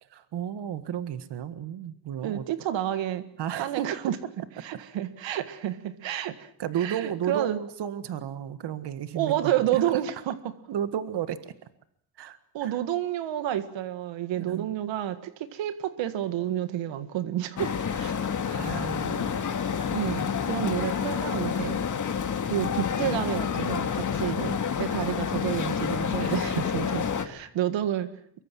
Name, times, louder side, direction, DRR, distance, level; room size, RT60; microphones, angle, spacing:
voice 1, 0.0-2.4 3.4-3.8 6.6-9.8 10.7-11.7 12.2-12.8 14.3-14.7 18.5-19.3 26.2-26.3, right 9 dB, 65° right, 12 dB, 1.8 m, -33 dB
voice 2, 2.2-3.3 3.6-4.2 4.6-6.5 6.8-7.6 9.2-10.5 12.5-18.1 19.9-21.8 22.5-28.1, right 12 dB, 90° right, 11 dB, 1.9 m, -30 dB
sound 1, 17.6-27.2, left 7 dB, 45° left, 2.2 m, -29 dB
24.5 x 23.0 x 7.5 m, 0.66 s
cardioid pair, 125°, 44 cm